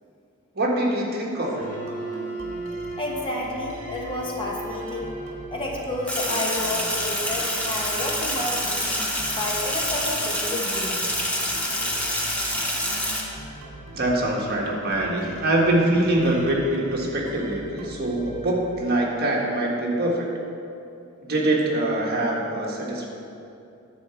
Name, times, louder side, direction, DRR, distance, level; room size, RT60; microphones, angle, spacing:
voice 1, 0.5-1.7 13.9-20.3 21.3-23.1, right 1 dB, 50° right, -2 dB, 1.5 m, -24 dB
Wind instrument woodwind instrument, 1.4-5.6, right 1 dB, 45° left, 2.4 m, -36 dB
sound 1, 1.6-19.1, right 1 dB, 70° right, 1.7 m, -41 dB
voice 2, 3.0-5.1 5.5-8.9 9.3-11.0, left 1 dB, 25° left, -2 dB, 1.2 m, -30 dB
Sink (filling or washing), 6.1-13.2, equal, 5° left, 1.1 m, -27 dB
10.5 x 4.8 x 7.0 m, 2.6 s
head